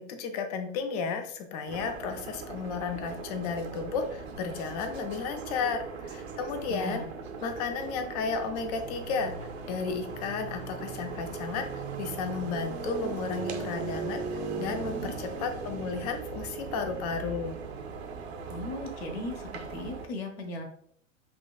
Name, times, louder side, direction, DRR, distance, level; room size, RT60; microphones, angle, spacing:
voice 1, 0.1-7.0 7.4-17.6, left 5 dB, 30° left, 7 dB, 0.4 m, -33 dB
sound 1, 1.7-20.1, right 5 dB, 55° right, 0.7 m, -38 dB
voice 2, 6.7-7.1 15.0-15.1 18.5-20.6, left 2 dB, 50° left, 3 dB, 0.9 m, -37 dB
5.5 x 2.3 x 2.3 m, 0.64 s
figure-of-eight pair, 100°, 39 cm